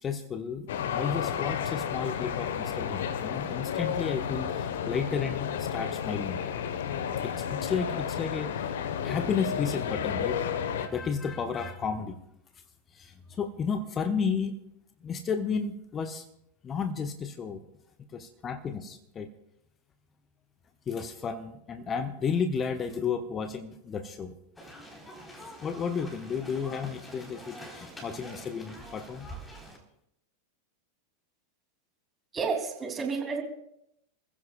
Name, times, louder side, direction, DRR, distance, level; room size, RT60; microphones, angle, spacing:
voice 1, 0.0-6.7 7.2-8.7 9.0-10.4 10.8-12.2 12.9-14.5 15.0-16.2 16.6-17.6 18.1-19.3 20.9-24.3 25.6-29.3, left 6 dB, 25° left, 8 dB, 1.0 m, -32 dB
sound 1, 0.7-10.9, left 8 dB, 60° left, 1.1 m, -32 dB
sound 2, 24.6-29.8, equal, 10° left, 4.0 m, -45 dB
voice 2, 32.3-33.4, right 5 dB, 20° right, 3 dB, 2.8 m, -30 dB
29.5 x 15.5 x 2.4 m, 0.77 s
figure-of-eight pair, 90°, 0 cm